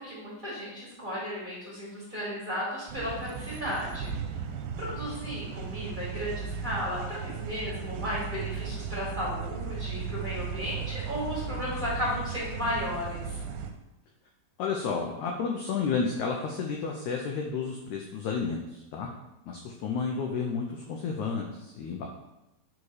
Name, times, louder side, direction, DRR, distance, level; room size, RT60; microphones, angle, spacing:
voice 1, 0.0-4.2 4.8-13.4, left 1 dB, 15° right, -8 dB, 2.5 m, -34 dB
sound 1, 2.9-13.7, right 6 dB, 80° right, 2.5 m, -36 dB
voice 2, 14.6-19.1 19.5-22.1, left 5 dB, 80° left, 1 dB, 1.7 m, -31 dB
9.7 x 4.2 x 4.8 m, 0.94 s
omnidirectional pair, 4.4 m